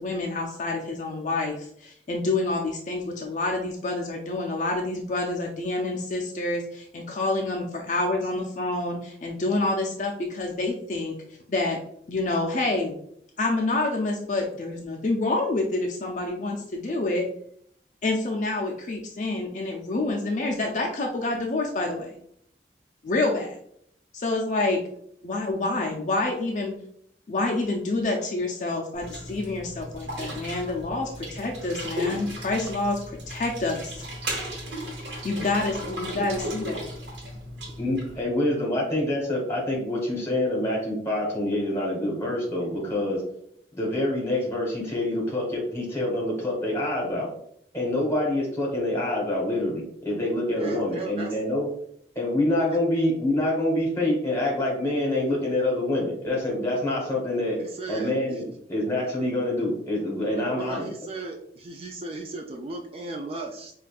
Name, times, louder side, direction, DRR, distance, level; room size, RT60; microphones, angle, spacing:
voice 1, 0.0-11.2 11.5-11.8 12.1-13.0 13.4-17.2 18.0-22.2 23.0-23.6 24.1-24.8 25.2-26.8 27.3-34.0 35.2-36.9, left 2 dB, 40° left, 0 dB, 0.4 m, -27 dB
sound 1, 28.9-38.2, equal, 80° right, 1.1 m, -35 dB
voice 2, 37.8-43.2 43.7-47.3 47.7-51.7 52.1-57.6 57.9-60.9, left 1 dB, 15° left, -3 dB, 1.2 m, -26 dB
voice 3, 50.6-51.4 52.7-52.8 57.6-58.5 60.4-63.7, right 2 dB, 35° right, 2 dB, 0.3 m, -36 dB
4.8 x 2.4 x 2.4 m, 0.68 s
head